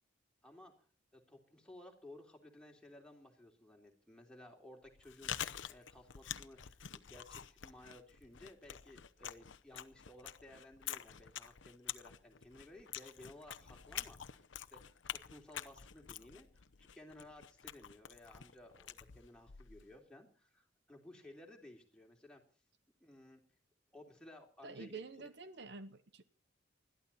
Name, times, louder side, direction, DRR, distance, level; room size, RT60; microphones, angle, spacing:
voice 1, 0.4-0.7 1.1-14.4 14.7-14.8 15.1-22.4 23.0-23.4 23.9-25.3, left 1 dB, 5° left, 1 dB, 3.4 m, -57 dB
Chewing mastication, 4.8-19.9, left 10 dB, 80° left, 0.8 m, -47 dB
voice 2, 24.6-26.2, right 4 dB, 65° right, 12 dB, 1.0 m, -48 dB
21.0 x 13.5 x 4.3 m, 0.38 s
head